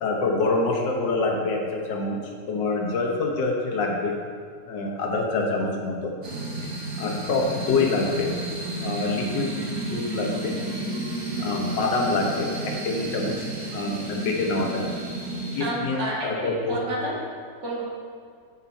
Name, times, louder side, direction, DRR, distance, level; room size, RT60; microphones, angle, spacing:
voice 1, 0.0-2.2 2.5-4.2 4.7-6.1 7.0-8.3 8.8-9.5 9.8-10.6 11.4-14.9 15.6-16.8, left 3 dB, 90° left, 1 dB, 1.8 m, -26 dB
sound 1, 6.2-15.7, right 2 dB, 45° right, 1.4 m, -32 dB
voice 2, 15.3-17.2 17.6-17.8, right 1 dB, 80° right, -5 dB, 2.5 m, -30 dB
8.0 x 6.7 x 4.2 m, 2.1 s
omnidirectional pair, 1.9 m